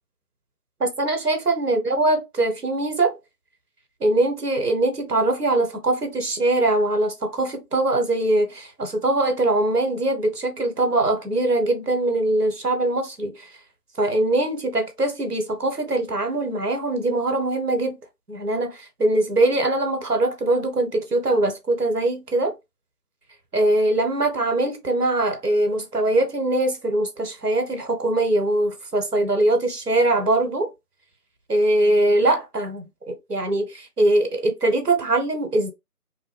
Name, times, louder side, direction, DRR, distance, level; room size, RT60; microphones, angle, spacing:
voice 1, 0.8-3.2 4.0-13.5 14.0-18.0 18.3-22.5 23.5-30.7 31.5-35.7, right 2 dB, 75° right, 1.1 m, -22 dB
2.7 x 2.1 x 3.2 m
figure-of-eight pair, 175°, 47 cm